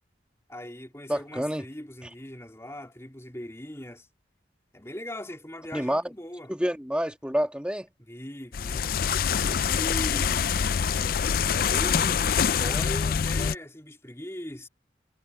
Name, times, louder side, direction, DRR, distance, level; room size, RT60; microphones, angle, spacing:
voice 1, 0.5-4.1 4.7-6.5 8.0-8.9 9.5-10.5 11.6-14.7, left 1 dB, 15° left, 3.5 m, -40 dB
voice 2, 1.1-1.6 5.7-6.0 6.5-7.9, equal, 5° right, 1.6 m, -28 dB
sound 1, 8.5-13.5, left 7 dB, 55° left, 0.4 m, -25 dB
head